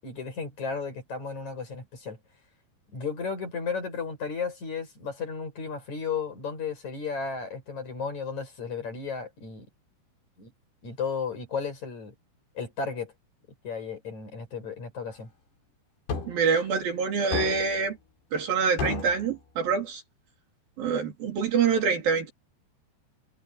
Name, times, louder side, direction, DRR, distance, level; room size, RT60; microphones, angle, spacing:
voice 1, 0.0-2.2 2.9-9.7 10.4-10.5 10.8-12.1 12.6-13.1 13.6-15.3, left 5 dB, 45° left, 7.7 m, -34 dB
sound 1, 16.1-16.4 17.3-17.8 18.8-19.3, left 5 dB, 70° left, 6.3 m, -32 dB
voice 2, 16.2-18.0 18.3-20.0 20.8-22.3, right 5 dB, 60° right, 4.7 m, -26 dB
omnidirectional pair, 4.7 m